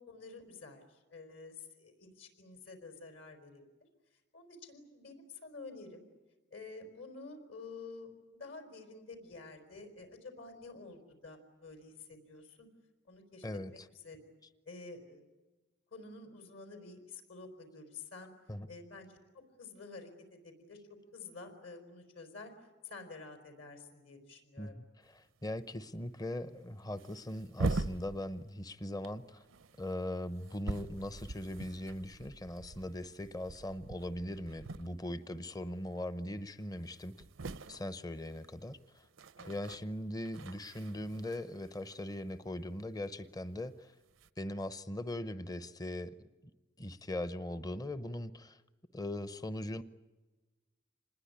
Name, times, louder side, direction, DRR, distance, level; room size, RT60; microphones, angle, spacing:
voice 1, 0.0-3.6 4.3-6.0 6.5-12.7 13.1-13.5 13.7-14.2 14.7-15.2 15.9-18.3 18.7-19.2 19.6-20.8 21.1-22.5 22.8-24.8 35.1-35.4 39.4-39.6, left 3 dB, 70° left, 5 dB, 4.6 m, -50 dB
voice 2, 13.4-13.9 18.5-18.7 24.6-29.4 29.8-37.1 37.7-39.0 39.5-43.9 44.4-46.1 46.8-48.6 48.9-49.8, left 1 dB, 20° left, 13 dB, 0.8 m, -40 dB
sound 1, 25.2-25.3 25.6-25.7 26.4-26.5 26.9-28.7 29.0-35.3 35.6-35.9 36.3-36.4 36.6-42.9 43.8-44.3, right 2 dB, 75° right, 0.8 m, -43 dB
26.5 x 20.5 x 9.8 m, 1.2 s
head